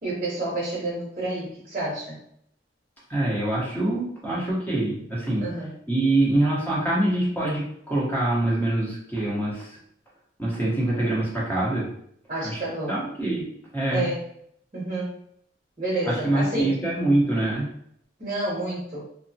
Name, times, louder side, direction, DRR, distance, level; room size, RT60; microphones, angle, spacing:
voice 1, 0.0-2.2 5.4-5.7 12.3-13.0 13.9-14.3 14.7-15.1 15.8-16.8 18.2-19.0, right 2 dB, 35° right, -7 dB, 0.8 m, -29 dB
voice 2, 3.1-5.4 5.9-9.8 10.4-11.9 12.4-12.6 12.9-13.5 13.7-14.1 16.1-17.7, right 1 dB, 10° left, -6 dB, 0.8 m, -24 dB
3.0 x 2.0 x 2.7 m, 0.69 s
head